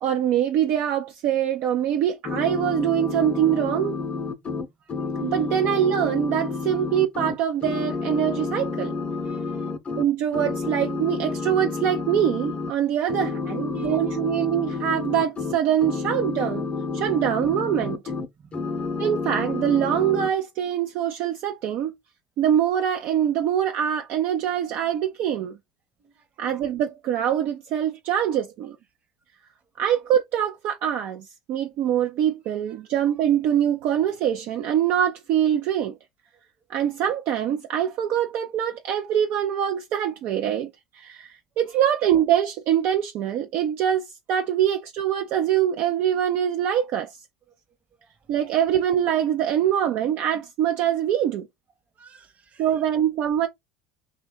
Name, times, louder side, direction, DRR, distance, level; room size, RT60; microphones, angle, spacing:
voice 1, 0.0-4.0 5.2-8.9 9.9-16.7 16.9-18.0 19.0-21.9 22.4-25.6 26.4-28.8 29.8-36.0 36.7-47.1 48.3-51.5 52.6-53.5, right 10 dB, 55° right, 0.4 m, -24 dB
sound 1, 2.2-7.3 7.6-10.1 10.3-12.7 13.1-18.3 18.5-20.3, left 4 dB, 30° left, 0.6 m, -29 dB
voice 2, 9.1-9.7 13.4-14.2 17.1-17.3 18.4-18.6 18.9-19.0 26.0-26.1 41.7-41.8 52.0-52.7, right 5 dB, 35° right, 0.9 m, -52 dB
2.6 x 2.2 x 3.7 m
hypercardioid pair, 75°, 4 cm